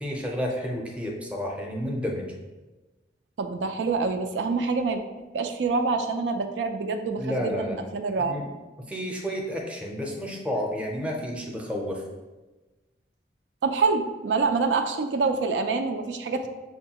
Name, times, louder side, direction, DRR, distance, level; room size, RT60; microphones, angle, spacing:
voice 1, 0.0-2.3 7.2-7.8 8.2-8.4 8.8-12.0, equal, 5° right, 0 dB, 0.5 m, -31 dB
voice 2, 3.4-5.0 5.3-8.4 13.6-16.5, right 4 dB, 85° right, 6 dB, 0.4 m, -26 dB
6.3 x 2.3 x 2.8 m, 1.2 s
head